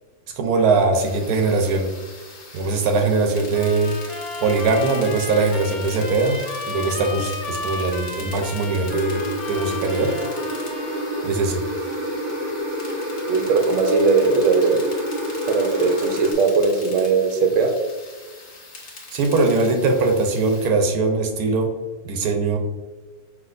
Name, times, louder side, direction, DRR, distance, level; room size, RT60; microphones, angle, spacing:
voice 1, 0.3-1.9 2.5-3.9 4.4-9.2 9.5-10.2 11.2-11.6 19.1-21.7 22.0-22.6, right 3 dB, 85° right, 4 dB, 1.2 m, -21 dB
sound 1, 0.9-20.7, left 2 dB, 60° left, 1.4 m, -41 dB
sound 2, 3.5-11.3, left 3 dB, 90° left, 1.3 m, -33 dB
sound 3, 8.9-16.3, equal, 30° right, 0.5 m, -28 dB
voice 2, 13.3-14.8 15.5-17.7, right 4 dB, 65° right, 4 dB, 0.9 m, -19 dB
5.8 x 2.9 x 2.5 m, 1.4 s
omnidirectional pair, 1.5 m